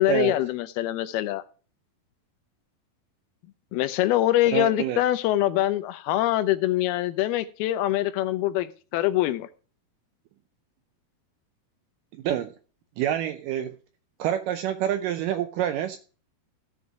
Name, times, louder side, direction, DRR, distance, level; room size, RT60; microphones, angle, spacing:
voice 1, 0.0-1.4 3.7-9.5, left 14 dB, 85° left, 2.6 m, -24 dB
voice 2, 4.5-5.0 12.2-12.5 13.0-13.8 14.2-16.0, right 11 dB, 80° right, 1.9 m, -27 dB
15.5 x 5.4 x 4.7 m
omnidirectional pair, 4.4 m